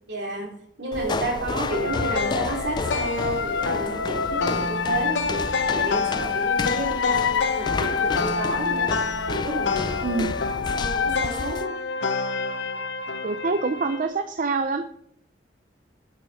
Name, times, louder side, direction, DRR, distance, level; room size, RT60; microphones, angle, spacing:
voice 1, 0.1-0.5 0.8-5.5 5.7-8.9 9.3-10.2 10.5-11.8, right 1 dB, 65° right, 0 dB, 3.1 m, -31 dB
sound 1, 0.9-11.7, left 3 dB, 25° left, 0.3 m, -32 dB
sound 2, 1.7-14.1, left 5 dB, 75° left, 0.8 m, -26 dB
voice 2, 10.0-10.3 13.2-14.8, right 3 dB, 45° right, 9 dB, 0.5 m, -25 dB
8.7 x 8.3 x 4.1 m, 0.68 s
head